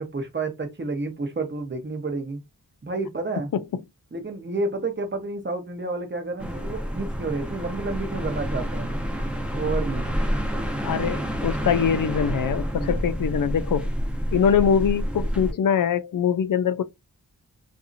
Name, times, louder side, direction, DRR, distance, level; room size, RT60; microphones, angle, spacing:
voice 1, 0.0-2.4 2.8-3.5 4.1-8.9 9.5-10.1 12.7-13.0, right 3 dB, 30° right, 0.9 m, -30 dB
sound 1, 6.4-15.5, equal, 5° right, 0.8 m, -28 dB
voice 2, 10.8-13.9 14.3-16.8, left 7 dB, 65° left, 0.5 m, -23 dB
2.7 x 2.5 x 2.5 m
wide cardioid pair, 60°, 36 cm